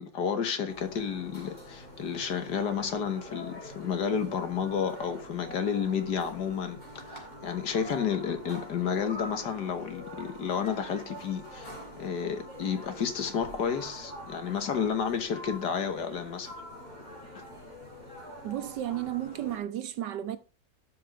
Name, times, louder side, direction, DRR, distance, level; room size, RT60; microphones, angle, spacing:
voice 1, 0.0-16.5, left 7 dB, 65° left, 1.8 m, -31 dB
sound 1, 0.7-19.6, equal, 25° left, 3.4 m, -45 dB
voice 2, 18.4-20.4, right 12 dB, 75° right, 1.5 m, -33 dB
12.5 x 5.5 x 5.1 m
omnidirectional pair, 1.9 m